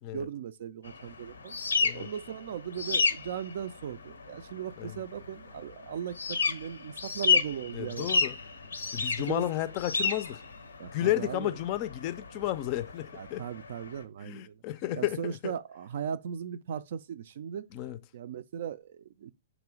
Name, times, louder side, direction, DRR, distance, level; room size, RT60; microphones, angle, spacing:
voice 1, 0.0-1.6 1.9-8.1 9.2-9.5 10.8-11.6 13.1-14.6 14.9-17.7 18.1-19.3, right 8 dB, 60° right, 0.3 m, -38 dB
sound 1, 0.8-14.0, left 4 dB, 80° left, 0.6 m, -32 dB
voice 2, 1.8-2.1 4.8-5.0 7.7-8.3 8.9-10.4 10.9-13.4 14.2-15.5 17.7-18.0, left 14 dB, 40° left, 0.4 m, -32 dB
3.6 x 3.0 x 4.8 m
hypercardioid pair, 120°, 0 cm